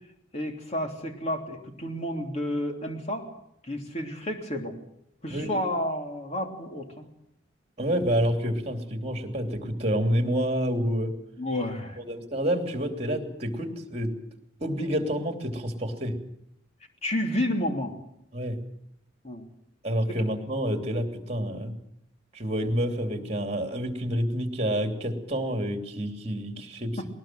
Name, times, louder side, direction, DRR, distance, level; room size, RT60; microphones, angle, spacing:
voice 1, 0.3-3.3 3.6-4.7 5.2-7.0 11.4-12.0 17.0-17.9 19.2-19.5 20.1-20.2 27.0-27.1, left 1 dB, 35° left, 3 dB, 3.1 m, -30 dB
voice 2, 7.8-11.1 12.0-14.1 14.6-16.2 18.3-18.6 19.8-21.7 22.3-27.0, equal, 30° right, 5 dB, 3.0 m, -28 dB
20.0 x 20.0 x 7.7 m, 0.79 s
head